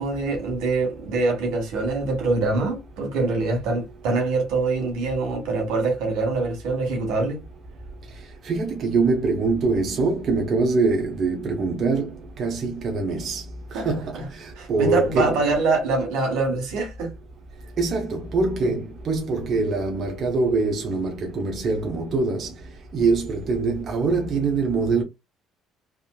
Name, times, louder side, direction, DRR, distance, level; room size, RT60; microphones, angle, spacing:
voice 1, 0.0-7.4 13.7-13.9 14.6-17.1, right 3 dB, 80° right, 1.4 m, -24 dB
voice 2, 8.4-12.1 12.4-13.4 13.8-15.3 17.8-22.5 22.9-25.0, right 3 dB, 45° right, 0.8 m, -23 dB
3.6 x 2.6 x 2.3 m
cardioid pair, 115°, 0 cm